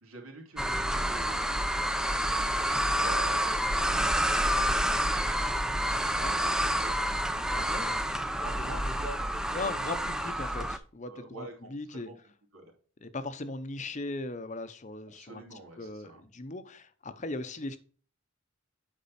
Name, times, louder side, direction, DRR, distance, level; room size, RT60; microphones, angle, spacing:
voice 1, 0.0-5.5 6.1-6.3 6.8-8.0 8.3-9.9 11.0-12.1 12.5-12.7 15.1-16.2, right 2 dB, 90° right, 1 dB, 3.0 m, -46 dB
sound 1, 0.6-10.8, equal, 5° right, 0.5 m, -28 dB
voice 2, 9.5-12.1 13.0-15.4 15.8-17.8, left 2 dB, 35° left, 12 dB, 0.7 m, -38 dB
8.5 x 5.3 x 4.2 m, 0.41 s
head